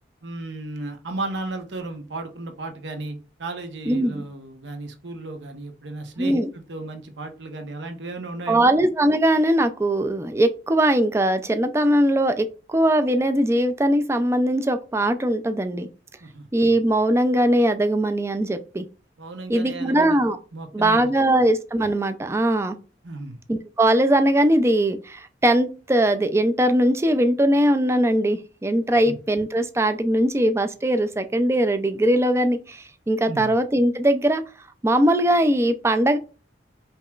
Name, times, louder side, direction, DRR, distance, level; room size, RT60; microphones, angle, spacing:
voice 1, 0.2-8.7 16.2-16.5 19.2-20.2 20.5-21.2 23.0-23.4 29.0-29.2 33.3-33.5, right 2 dB, 75° right, 5 dB, 0.9 m, -34 dB
voice 2, 3.9-4.2 6.2-6.5 8.5-15.9 16.5-18.9 19.5-20.4 20.7-22.8 23.5-34.4 34.8-36.2, right 1 dB, 15° right, 9 dB, 0.3 m, -20 dB
5.3 x 2.9 x 2.3 m, 0.36 s
head